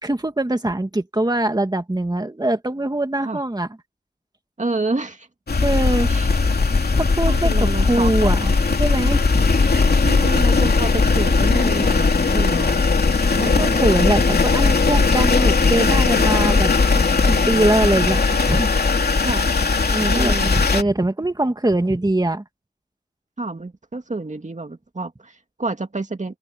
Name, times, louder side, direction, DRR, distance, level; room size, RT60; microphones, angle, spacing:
voice 1, 0.0-3.7 5.6-6.3 6.9-8.4 8.8-9.5 13.4-18.7 19.9-22.4, right 1 dB, 25° right, 2.2 m, -22 dB
voice 2, 4.6-5.3 6.1-6.6 7.3-8.6 10.0-12.9 13.3-13.9 19.2-19.5 20.1-20.6 23.4-26.4, right 3 dB, 50° right, 2.3 m, -29 dB
sound 1, 5.5-20.8, left 4 dB, 85° left, 3.0 m, -18 dB
wide cardioid pair, 45°, 16 cm